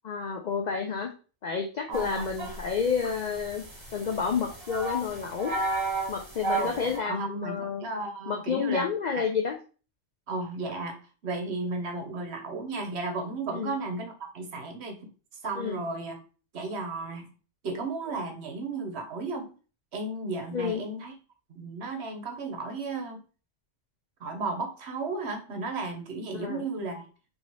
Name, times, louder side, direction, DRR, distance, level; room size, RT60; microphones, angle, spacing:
voice 1, 0.0-1.1 1.4-3.6 3.9-5.5 6.1-7.9 8.3-9.5 13.5-13.8 15.6-15.8 20.5-20.8 26.3-26.7, left 6 dB, 70° left, 2 dB, 0.4 m, -30 dB
sound 1, 1.9-7.0, right 2 dB, 25° right, 1.2 m, -33 dB
voice 2, 1.9-2.3 6.6-8.8 10.3-11.0 11.2-15.0 15.4-16.2 16.5-17.3 17.6-19.5 19.9-21.2 21.5-23.2 24.2-27.0, right 3 dB, 60° right, 4 dB, 1.0 m, -34 dB
4.1 x 2.8 x 3.0 m, 0.37 s
omnidirectional pair, 1.3 m